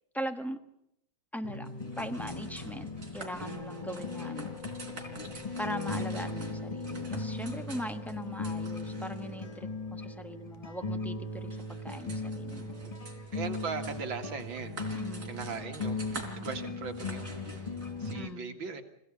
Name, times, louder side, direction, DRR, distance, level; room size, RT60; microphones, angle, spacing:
voice 1, 0.1-0.6 1.3-1.7 2.0-4.6 5.6-12.7 14.9-15.4 18.1-18.5, equal, ahead, 7 dB, 1.3 m, -40 dB
sound 1, 1.4-18.3, left 3 dB, 25° left, 0.8 m, -38 dB
sound 2, 1.6-18.1, right 2 dB, 40° right, 4.2 m, -47 dB
sound 3, 3.8-10.4, left 5 dB, 65° left, 2.5 m, -51 dB
voice 2, 13.3-14.8 15.2-16.0 16.4-18.8, right 5 dB, 75° right, 6 dB, 2.7 m, -39 dB
26.0 x 16.5 x 8.6 m, 0.78 s
omnidirectional pair, 2.1 m